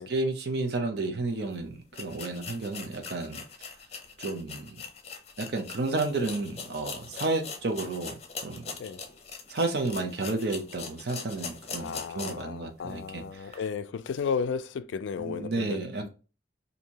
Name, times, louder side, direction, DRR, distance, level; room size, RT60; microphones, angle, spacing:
voice 1, 0.0-3.7 4.2-4.8 5.4-8.1 8.4-8.7 9.5-13.7 15.2-16.1, right 2 dB, 60° right, 0.6 m, -32 dB
sound 1, 1.4-1.5 1.9-12.5 12.9-13.0 13.5-13.6, left 5 dB, 35° left, 0.6 m, -41 dB
voice 2, 11.8-15.8, left 6 dB, 80° left, 0.3 m, -33 dB
2.8 x 2.7 x 4.4 m
head